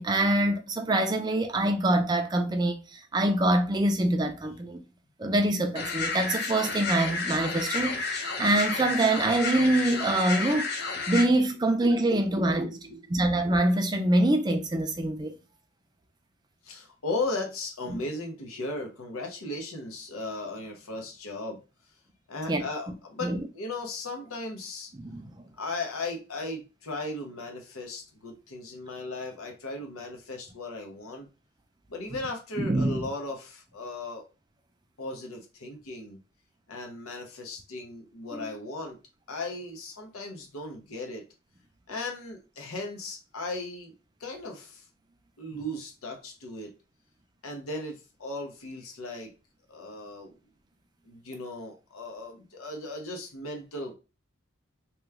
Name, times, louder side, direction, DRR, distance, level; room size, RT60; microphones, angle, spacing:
voice 1, 0.0-4.8 5.2-10.7 11.1-12.7 13.1-15.3 17.9-18.0 22.5-22.7 23.2-23.4 24.9-25.3 32.6-33.1 38.3-38.5, right 1 dB, 20° right, 0.3 m, -25 dB
sound 1, 5.8-11.2, left 4 dB, 50° left, 0.6 m, -31 dB
voice 2, 12.3-13.0 16.6-21.6 22.3-24.9 25.6-31.3 31.9-34.2 35.0-36.2 36.7-39.0 39.3-41.2 41.9-43.9 44.2-44.9 45.4-46.7 47.4-49.3 49.7-50.3 51.1-53.9, left 2 dB, 90° left, 0.8 m, -37 dB
3.0 x 2.2 x 3.4 m
head